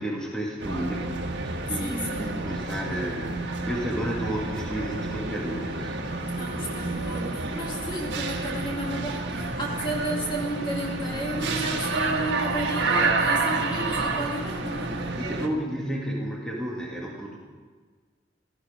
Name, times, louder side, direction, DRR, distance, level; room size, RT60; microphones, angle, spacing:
voice 1, 0.0-6.0 15.1-17.4, equal, 5° left, -3 dB, 2.2 m, -32 dB
sound 1, 0.6-15.5, right 3 dB, 70° right, 1.5 m, -29 dB
voice 2, 1.8-2.4 6.3-15.1, right 1 dB, 25° left, -2 dB, 2.3 m, -33 dB
17.5 x 13.5 x 5.2 m, 1.5 s
head